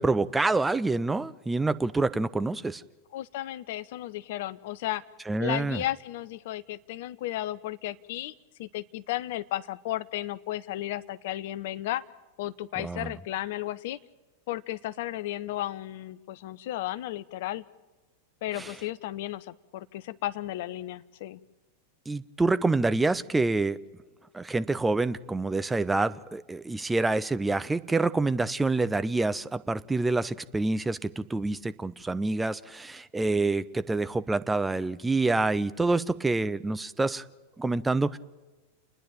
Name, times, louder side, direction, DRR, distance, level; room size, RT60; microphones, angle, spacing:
voice 1, 0.0-2.8 5.3-5.8 12.8-13.1 18.6-18.7 22.1-23.8 24.3-37.2 37.6-38.2, right 3 dB, 10° right, 13 dB, 0.6 m, -27 dB
voice 2, 3.1-5.0 5.4-8.3 8.6-12.0 12.4-14.0 14.5-17.6 18.4-21.4, left 14 dB, 50° left, 15 dB, 0.7 m, -34 dB
29.5 x 10.0 x 8.9 m, 1.2 s
figure-of-eight pair, 90°, 0 cm